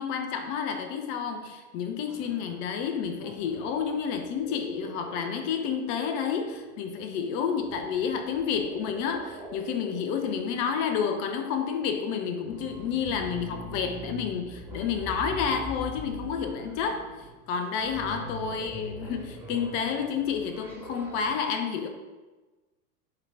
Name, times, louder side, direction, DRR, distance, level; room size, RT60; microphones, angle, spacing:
voice 1, 0.0-17.0 17.5-21.9, left 7 dB, 25° left, 6 dB, 0.4 m, -30 dB
sound 1, 2.1-21.3, right 1 dB, 5° right, 0.9 m, -43 dB
7.2 x 3.5 x 3.7 m, 1.2 s
figure-of-eight pair, 90°, 47 cm